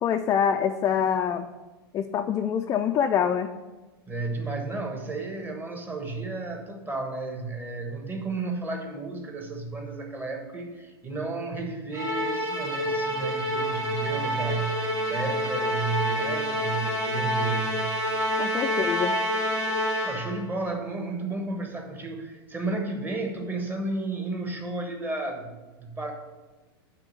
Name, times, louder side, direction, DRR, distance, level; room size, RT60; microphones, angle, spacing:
voice 1, 0.0-1.5 1.9-3.5 18.4-19.2, left 8 dB, 25° left, 4 dB, 0.4 m, -25 dB
voice 2, 4.1-14.8 15.1-18.0 19.8-26.1, right 3 dB, 15° right, 3 dB, 1.2 m, -32 dB
Musical instrument, 11.9-20.4, equal, 70° right, 2.4 m, -28 dB
9.0 x 3.6 x 6.5 m, 1.2 s
hypercardioid pair, 125°, 13 cm